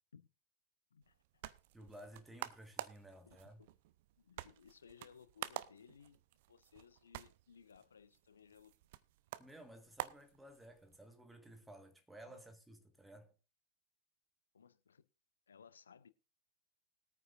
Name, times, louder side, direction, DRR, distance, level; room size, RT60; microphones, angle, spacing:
voice 1, 0.9-1.4 3.2-3.7 4.2-6.2 6.5-8.7 12.3-12.4 14.5-15.0 15.5-16.1, left 7 dB, 70° left, 0.6 m, -61 dB
sound 1, 1.0-11.0, right 15 dB, 50° right, 0.7 m, -50 dB
voice 2, 1.7-3.6 9.4-13.3, right 1 dB, 5° right, 1.6 m, -56 dB
20.5 x 9.3 x 2.5 m
figure-of-eight pair, 90°, 0 cm